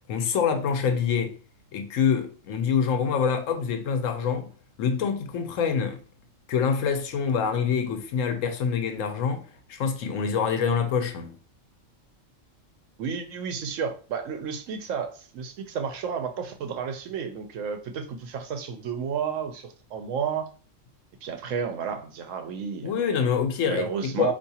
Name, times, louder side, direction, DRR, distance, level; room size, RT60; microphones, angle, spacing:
voice 1, 0.1-1.3 1.7-4.5 4.8-6.0 6.5-11.3 22.8-24.3, left 6 dB, 85° left, 1.0 m, -26 dB
voice 2, 13.0-20.5 21.2-22.9 23.7-24.3, right 6 dB, 90° right, 1.0 m, -31 dB
4.7 x 2.7 x 2.8 m
omnidirectional pair, 1.3 m